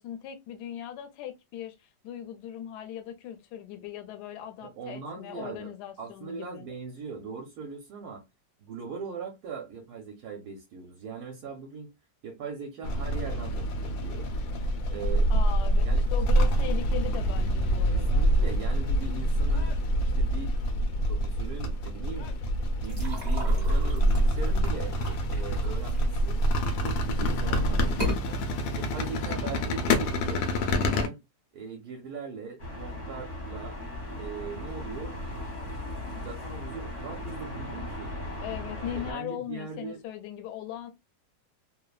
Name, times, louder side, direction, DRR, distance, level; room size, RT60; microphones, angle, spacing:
voice 1, 0.0-6.6 15.3-18.3 38.4-40.9, left 10 dB, 70° left, 1.1 m, -39 dB
voice 2, 4.6-8.2 8.6-11.9 12.2-14.3 14.9-15.4 15.8-16.0 17.8-19.7 20.2-20.6 21.0-22.3 22.8-25.0 25.3-26.4 26.8-28.5 28.7-31.2 31.5-33.8 34.2-35.2 36.0-38.1 38.9-40.0, right 5 dB, 65° right, 1.1 m, -40 dB
sound 1, 12.8-31.1, equal, 90° left, 1.3 m, -26 dB
sound 2, 22.8-26.6 27.1-27.5 27.9-28.2, left 2 dB, 25° right, 0.7 m, -36 dB
sound 3, 32.6-39.1, left 1 dB, 30° left, 0.8 m, -37 dB
3.1 x 2.1 x 2.3 m
omnidirectional pair, 2.0 m